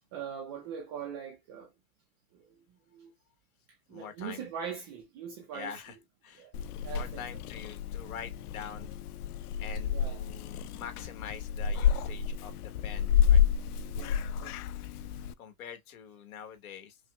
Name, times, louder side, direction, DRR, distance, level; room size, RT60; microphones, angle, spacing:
voice 1, 0.1-1.7 2.3-3.1 3.9-5.8 6.4-6.5 6.8-7.2 9.9-10.2 13.9-14.6, right 7 dB, 20° right, 0.3 m, -42 dB
voice 2, 3.9-4.4 5.5-6.5 6.9-8.9 9.6-13.4 15.4-17.0, left 7 dB, 70° left, 1.5 m, -45 dB
Purr / Meow, 6.5-15.3, left 8 dB, 90° left, 0.6 m, -30 dB
5.6 x 2.0 x 2.3 m
supercardioid pair, 150°, 44 cm